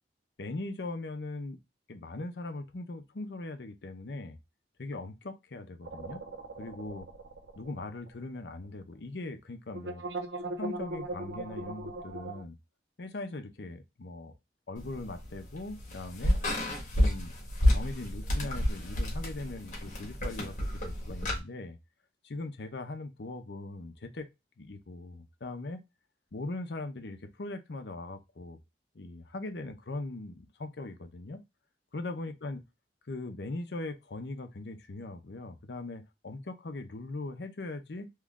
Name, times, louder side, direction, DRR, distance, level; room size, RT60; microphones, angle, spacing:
voice 1, 0.4-1.6 1.9-4.4 4.8-6.2 6.6-7.1 7.6-10.0 10.4-12.6 13.0-14.3 14.7-16.4 17.0-17.3 17.7-21.8 22.2-24.3 24.6-25.8 26.3-28.6 28.9-31.4 31.9-32.6 33.1-38.1, left 2 dB, 70° left, 0.7 m, -40 dB
sound 1, 5.8-8.4 8.6-8.7 9.7-12.4, right 2 dB, 80° right, 0.6 m, -39 dB
sound 2, 14.8-21.4, left 1 dB, 45° left, 1.4 m, -30 dB
3.6 x 3.1 x 2.3 m
head